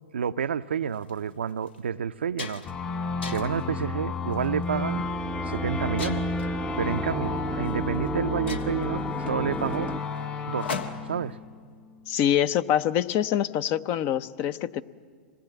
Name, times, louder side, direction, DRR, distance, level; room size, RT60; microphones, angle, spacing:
voice 1, 0.1-2.7 3.2-5.0 5.4-6.3 6.8-9.9 10.5-10.7 11.1-11.4, right 7 dB, 85° right, 0.5 m, -29 dB
sound 1, 0.9-1.1 1.7-1.8 2.1-2.8 3.2-3.7 4.3-4.6 6.0-6.5 7.6-7.7 8.1-8.2 8.5-11.2, left 4 dB, 80° left, 1.5 m, -38 dB
sound 2, 2.6-12.0, left 5 dB, 25° left, 2.0 m, -32 dB
sound 3, 4.5-10.0, right 3 dB, 10° right, 0.6 m, -34 dB
voice 2, 12.1-14.8, left 10 dB, 45° left, 0.7 m, -25 dB
26.0 x 19.5 x 8.0 m
hypercardioid pair, 110°, 6 cm